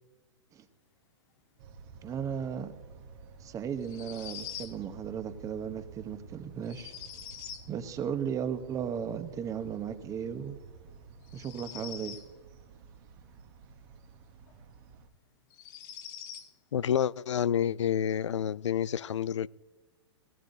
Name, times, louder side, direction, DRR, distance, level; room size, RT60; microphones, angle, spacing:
sound 1, 1.6-15.1, right 5 dB, 45° right, 1.2 m, -51 dB
voice 1, 2.0-2.7 3.4-6.9 7.7-10.6 11.3-12.2, right 8 dB, 20° right, 1.0 m, -35 dB
sound 2, 3.8-4.8 6.6-7.7 11.2-12.3 14.5-14.6 15.5-16.5, left 9 dB, 45° left, 1.4 m, -44 dB
voice 2, 16.7-19.5, left 9 dB, 85° left, 0.4 m, -28 dB
18.5 x 16.0 x 2.7 m
hypercardioid pair, 125°, 15 cm